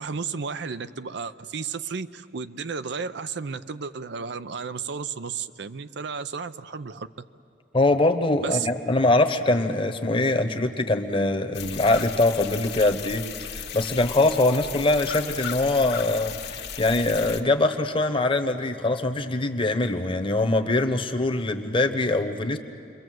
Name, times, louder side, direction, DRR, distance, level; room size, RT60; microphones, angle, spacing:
voice 1, 0.0-7.1 8.4-8.7, right 5 dB, 65° right, 12 dB, 0.6 m, -33 dB
voice 2, 7.7-13.2 13.5-22.6, left 2 dB, 30° left, 6 dB, 1.1 m, -23 dB
sound 1, 11.5-17.4, left 7 dB, 60° left, 1.4 m, -35 dB
27.5 x 22.5 x 7.8 m, 2.5 s
head